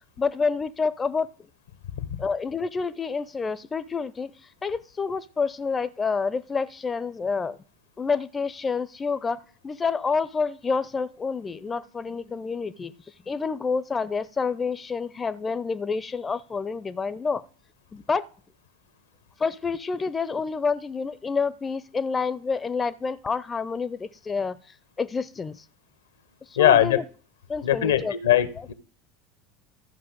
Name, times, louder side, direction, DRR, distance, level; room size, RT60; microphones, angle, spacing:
voice 1, 0.2-1.3 2.2-4.3 4.6-7.6 8.0-12.9 13.3-17.4 17.9-18.2 19.4-24.6 25.0-25.6 26.5-27.0 27.5-28.2 28.6-28.7, left 5 dB, 25° left, 15 dB, 0.6 m, -28 dB
voice 2, 26.6-27.0 27.6-28.7, left 11 dB, 80° left, 14 dB, 0.9 m, -21 dB
13.5 x 5.6 x 5.2 m, 0.41 s
hypercardioid pair, 75°, 0 cm